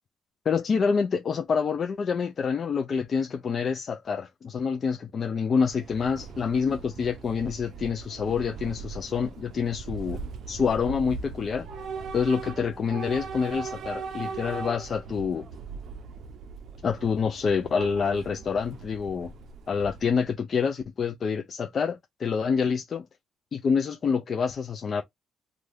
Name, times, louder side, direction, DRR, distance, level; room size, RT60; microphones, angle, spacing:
voice 1, 0.5-10.2 10.5-11.7 12.1-15.5 16.8-19.3 19.7-23.1 23.5-25.0, left 6 dB, 50° left, 0.4 m, -27 dB
Train / Subway metro underground, 5.5-20.3, right 5 dB, 65° right, 0.5 m, -39 dB
2.5 x 2.3 x 3.3 m
cardioid pair, 90°, 0 cm